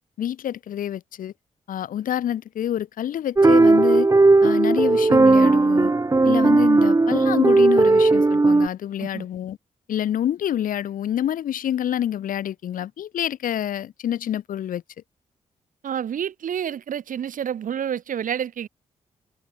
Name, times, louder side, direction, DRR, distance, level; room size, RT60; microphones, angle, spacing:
voice 1, 0.2-1.3 1.7-4.1 4.4-5.9 6.2-9.6 9.9-14.8, left 10 dB, 75° left, 3.0 m, -27 dB
sound 1, 3.4-8.7, right 3 dB, 20° right, 1.1 m, -16 dB
voice 2, 15.8-18.7, right 9 dB, 70° right, 3.3 m, -29 dB
supercardioid pair, 50°, 14 cm